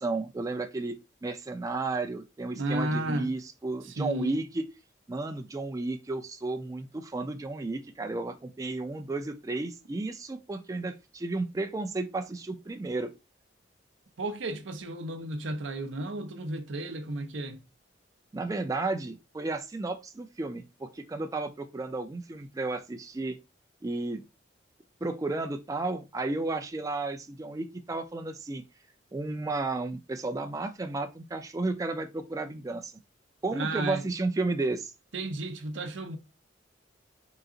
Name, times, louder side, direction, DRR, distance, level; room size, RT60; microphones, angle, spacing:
voice 1, 0.0-4.6 5.1-13.1 18.3-23.4 23.8-24.2 25.0-28.6 29.1-32.9 33.4-34.9, right 2 dB, 20° right, 0.3 m, -33 dB
voice 2, 2.5-3.3 3.8-4.4 14.2-17.7 33.5-34.0 35.1-36.2, right 2 dB, 80° right, 0.7 m, -33 dB
3.9 x 2.4 x 3.8 m
head